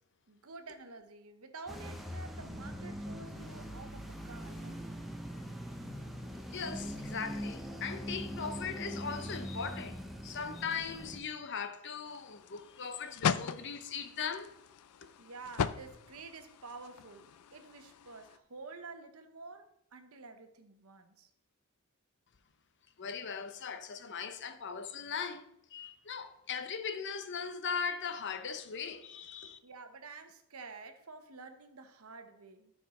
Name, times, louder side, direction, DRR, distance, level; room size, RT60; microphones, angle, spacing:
voice 1, 0.3-4.8 15.2-17.3 17.5-21.3 29.6-32.7, right 3 dB, 75° right, 1.0 m, -49 dB
sound 1, 1.7-11.2, equal, ahead, 0.8 m, -42 dB
voice 2, 6.5-14.5 23.0-25.4 25.7-29.6, left 6 dB, 55° left, 0.8 m, -39 dB
sound 2, 12.1-18.4, left 7 dB, 85° left, 0.4 m, -38 dB
13.0 x 4.7 x 4.2 m
head